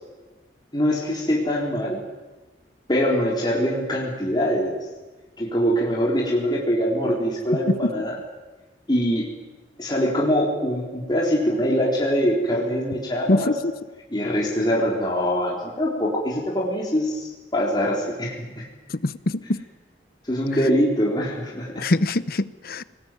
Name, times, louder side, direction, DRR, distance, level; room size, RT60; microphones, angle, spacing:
voice 1, 0.7-2.0 2.9-4.8 5.4-8.2 8.9-9.3 9.8-13.5 14.1-18.7 20.3-21.9, equal, 25° left, 3.9 m, -23 dB
voice 2, 18.9-19.6 21.8-22.8, left 2 dB, 60° left, 0.8 m, -23 dB
23.5 x 19.5 x 9.2 m
head